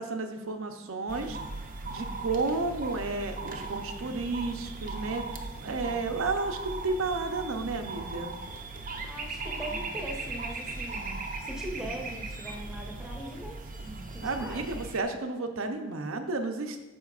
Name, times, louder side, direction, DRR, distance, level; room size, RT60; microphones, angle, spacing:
voice 1, 0.0-1.4 1.9-5.2 5.6-8.3 14.2-16.8, right 3 dB, 75° right, 5 dB, 0.7 m, -32 dB
sound 1, 1.1-15.0, right 3 dB, 40° right, 0.6 m, -38 dB
voice 2, 9.0-13.6 14.1-14.7, equal, 5° right, -2 dB, 1.0 m, -40 dB
13.0 x 4.5 x 2.4 m, 1.1 s
head